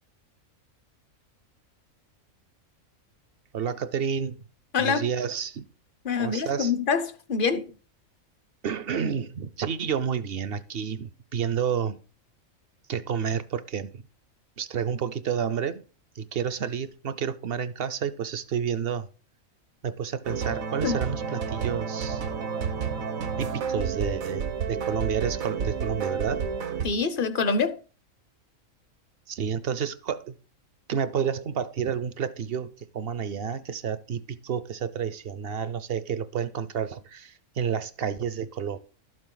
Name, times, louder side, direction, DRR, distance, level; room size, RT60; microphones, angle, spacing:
voice 1, 3.5-4.4 4.8-5.7 6.2-6.7 8.6-12.0 12.9-14.0 14.6-15.8 16.2-19.1 19.8-22.2 23.4-26.4 29.3-30.4 30.9-38.8, right 7 dB, 55° right, 0.7 m, -30 dB
voice 2, 4.7-5.1 6.0-7.7 20.8-20.9 26.8-27.8, left 5 dB, 45° left, 0.9 m, -25 dB
sound 1, 20.2-26.9, right 6 dB, 80° right, 1.4 m, -30 dB
12.0 x 7.5 x 3.9 m
omnidirectional pair, 1.4 m